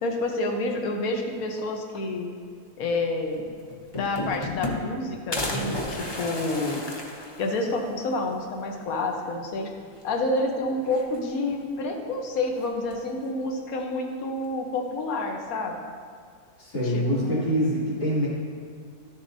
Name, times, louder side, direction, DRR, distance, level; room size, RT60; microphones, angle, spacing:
voice 1, 0.0-2.3 2.8-3.4 3.9-6.8 7.4-9.7 10.0-15.7 16.8-17.5, left 2 dB, 65° left, 3 dB, 1.4 m, -29 dB
sound 1, 3.3-3.4 3.7-5.0 5.3-7.9 8.3-8.4 8.7-8.8 9.9-10.4 10.8-11.5 12.6-13.1, left 1 dB, 25° left, 0.5 m, -33 dB
voice 2, 16.6-18.3, equal, 85° left, -9 dB, 3.2 m, -25 dB
13.5 x 7.0 x 2.7 m, 2.1 s
omnidirectional pair, 1.7 m